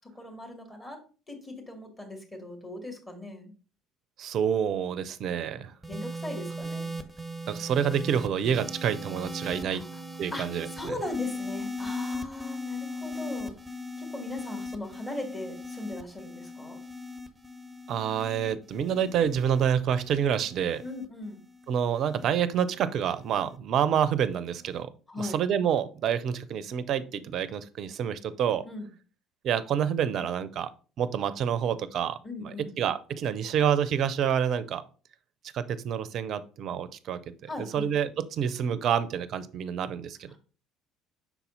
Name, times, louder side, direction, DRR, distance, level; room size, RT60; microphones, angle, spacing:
voice 1, 0.1-1.0 1.3-3.5 5.5-6.9 9.7-10.0 10.3-10.5 10.8-13.5 14.0-16.8 20.8-21.4 25.1-25.4 28.6-28.9 32.2-32.8 37.5-37.9, left 2 dB, 20° left, 1 dB, 2.1 m, -39 dB
voice 2, 4.2-5.7 7.5-9.8 10.2-10.9 17.9-20.8 21.7-24.9 25.2-28.6 29.4-30.7 31.0-32.5 32.8-34.8 35.5-40.4, right 8 dB, 50° right, 15 dB, 0.5 m, -28 dB
sound 1, 5.8-22.3 23.2-23.6, left 1 dB, 10° right, 0.8 m, -39 dB
5.8 x 4.1 x 4.0 m, 0.37 s
figure-of-eight pair, 55°, 0 cm